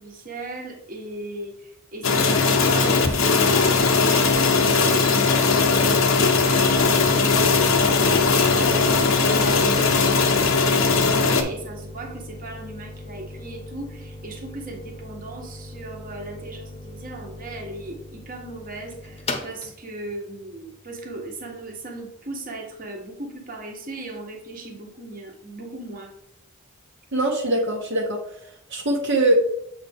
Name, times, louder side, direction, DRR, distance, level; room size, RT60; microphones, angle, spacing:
voice 1, 0.0-26.1, right 2 dB, 40° right, 1 dB, 1.3 m, -37 dB
sound 1, 2.0-11.4, left 4 dB, 65° left, 0.9 m, -19 dB
sound 2, 4.3-21.8, left 1 dB, 30° left, 0.9 m, -40 dB
voice 2, 27.1-28.2 28.7-29.3, right 1 dB, 60° right, -2 dB, 1.1 m, -22 dB
7.7 x 4.2 x 3.5 m, 0.73 s
head